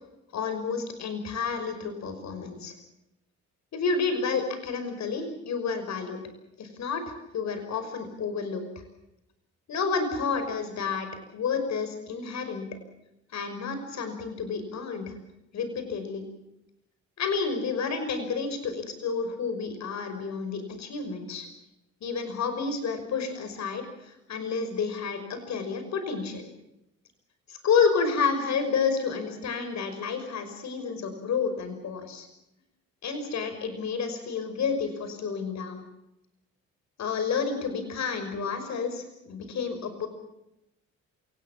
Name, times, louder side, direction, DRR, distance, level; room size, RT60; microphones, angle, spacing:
voice 1, 0.3-2.8 3.7-6.2 6.6-8.6 9.7-12.7 13.3-15.1 15.5-16.2 17.2-21.5 22.0-26.5 27.5-32.3 33.0-35.8 37.0-40.1, left 5 dB, 65° left, 8 dB, 5.7 m, -30 dB
27.5 x 18.5 x 7.4 m, 0.85 s
cardioid pair, 90°, 30 cm